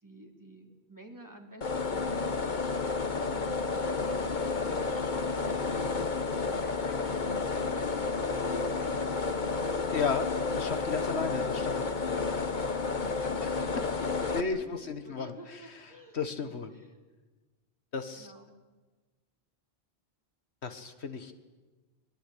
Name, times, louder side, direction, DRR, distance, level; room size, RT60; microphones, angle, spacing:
voice 1, 0.0-2.6 3.1-9.1 10.9-16.9 18.1-18.6, equal, 15° right, 2 dB, 3.5 m, -50 dB
sound 1, 1.6-14.4, left 4 dB, 45° left, 1.3 m, -31 dB
voice 2, 9.9-10.3 10.5-11.8 14.3-15.3 16.1-16.7 17.9-18.3 20.6-21.3, left 5 dB, 85° left, 9 dB, 1.8 m, -33 dB
24.0 x 21.5 x 8.6 m, 1.3 s
omnidirectional pair, 1.1 m